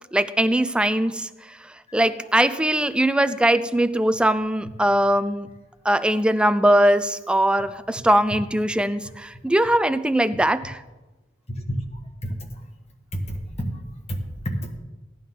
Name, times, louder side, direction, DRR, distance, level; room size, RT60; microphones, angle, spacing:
voice 1, 0.1-5.5 5.8-10.8, right 1 dB, 5° right, 13 dB, 0.4 m, -21 dB
voice 2, 11.7-12.6 13.1-13.8 14.1-14.7, equal, 35° left, 3 dB, 1.7 m, -30 dB
16.5 x 11.0 x 3.8 m, 1.1 s
head